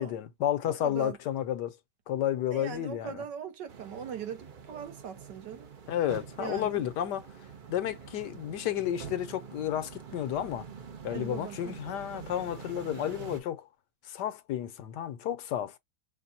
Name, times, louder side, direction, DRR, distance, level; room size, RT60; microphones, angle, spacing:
voice 1, 0.0-1.8 2.1-3.2 5.9-7.3 7.7-10.7 11.0-13.6 14.1-15.8, left 11 dB, 80° left, 1.3 m, -32 dB
voice 2, 0.6-1.2 2.5-5.7 6.4-6.8 11.1-11.7, right 8 dB, 80° right, 1.7 m, -40 dB
sound 1, 3.7-13.4, right 6 dB, 55° right, 0.5 m, -46 dB
5.9 x 2.2 x 2.7 m
omnidirectional pair, 1.9 m